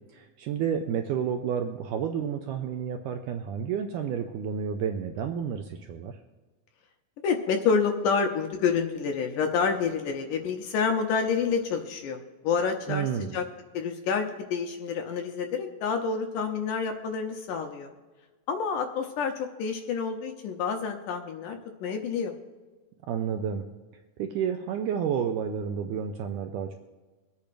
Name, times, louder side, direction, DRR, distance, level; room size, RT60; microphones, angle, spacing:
voice 1, 0.1-6.2 12.9-13.3 23.1-23.7 24.2-26.8, right 8 dB, 80° right, 5 dB, 1.9 m, -30 dB
voice 2, 7.2-13.5 13.7-17.9 18.5-22.3, left 5 dB, 75° left, 4 dB, 2.1 m, -28 dB
24.5 x 8.5 x 2.5 m, 1.3 s
omnidirectional pair, 4.1 m